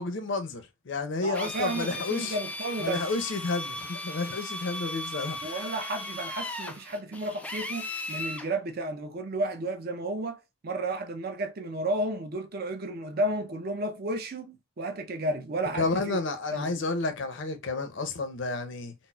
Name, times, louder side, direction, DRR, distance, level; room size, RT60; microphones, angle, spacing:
voice 1, 0.0-2.3 2.8-5.6 15.7-18.9, left 3 dB, 60° left, 0.6 m, -31 dB
voice 2, 1.2-3.0 5.4-16.2 16.5-16.8, right 2 dB, 50° right, 0.6 m, -32 dB
Drill, 1.3-8.5, left 1 dB, 5° left, 0.3 m, -37 dB
4.0 x 2.0 x 2.2 m
head